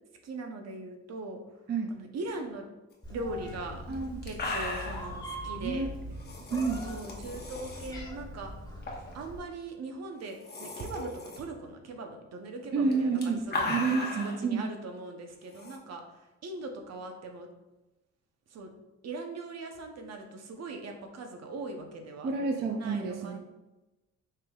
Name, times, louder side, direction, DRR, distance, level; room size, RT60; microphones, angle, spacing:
voice 1, 0.2-1.4 1.9-2.7 3.1-3.8 4.2-5.9 6.8-8.5 9.1-13.7 14.0-17.5 18.5-18.7 19.0-22.3 22.8-23.4, right 2 dB, 60° right, 4 dB, 0.8 m, -40 dB
Meow, 3.0-9.4, equal, 15° left, 1.5 m, -42 dB
sound 1, 3.5-3.6 3.9-4.0 4.2-5.1 6.2-7.9 8.8-9.1 9.4-9.5 10.2-11.4 12.8-14.4 15.5-15.8, left 2 dB, 35° left, 1.0 m, -36 dB
voice 2, 3.9-4.2 5.4-5.9 6.5-6.8 12.7-13.4 13.7-14.7 22.2-23.4, right 4 dB, 35° right, 4 dB, 0.4 m, -29 dB
5.6 x 3.3 x 2.3 m, 1.0 s
cardioid pair, 90°, 30 cm